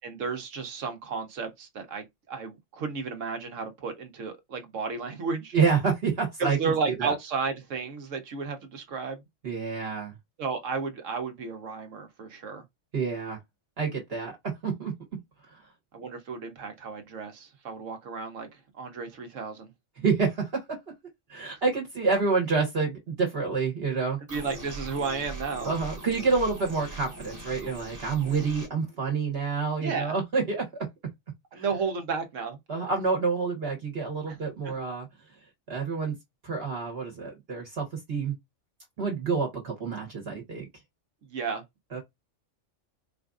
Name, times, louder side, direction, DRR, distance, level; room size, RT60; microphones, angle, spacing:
voice 1, 0.0-5.5 6.4-9.2 10.4-12.6 15.9-19.7 24.3-25.7 29.8-30.1 31.5-32.6 34.3-34.4 41.3-41.6, right 5 dB, 75° right, 1.3 m, -33 dB
voice 2, 5.5-6.7 7.0-7.1 9.4-10.2 12.9-13.4 13.8-14.9 15.4-15.6 20.0-20.8 21.3-24.2 25.6-30.9 31.5-31.6 32.7-35.1 35.7-36.2 36.4-38.3 39.0-40.7 41.9-42.0, right 4 dB, 55° right, 1.3 m, -28 dB
sound 1, 24.3-28.7, right 2 dB, 15° right, 0.9 m, -41 dB
4.3 x 2.5 x 2.4 m
omnidirectional pair, 1.3 m